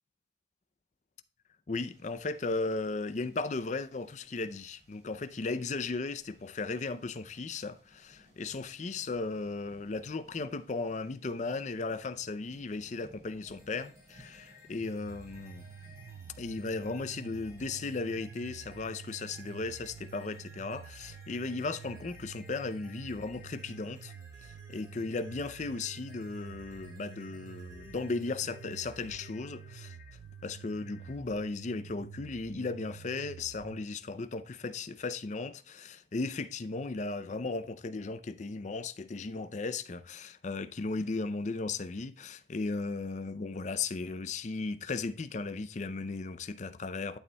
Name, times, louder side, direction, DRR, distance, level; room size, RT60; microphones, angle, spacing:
voice 1, 1.7-15.6 16.4-24.1 24.4-29.9 30.4-47.2, left 3 dB, 40° left, 0.5 m, -36 dB
sound 1, 1.9-18.2, equal, 40° right, 3.2 m, -62 dB
sound 2, 13.5-31.1, left 2 dB, 15° right, 2.0 m, -57 dB
sound 3, 14.8-33.8, right 8 dB, 90° right, 0.3 m, -49 dB
11.5 x 6.7 x 2.2 m
head